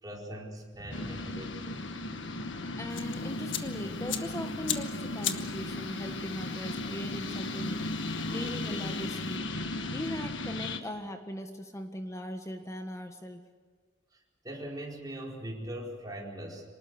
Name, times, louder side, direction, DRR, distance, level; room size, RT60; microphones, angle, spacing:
voice 1, 0.0-1.7 14.4-16.6, right 1 dB, 20° right, -2 dB, 4.8 m, -40 dB
sound 1, 0.9-10.8, left 2 dB, 75° left, 1.7 m, -36 dB
voice 2, 2.8-9.5 9.9-13.4, equal, 15° left, 5 dB, 1.5 m, -39 dB
sound 2, 2.9-9.4, left 10 dB, 90° left, 1.6 m, -40 dB
25.5 x 19.5 x 8.1 m, 1.5 s
head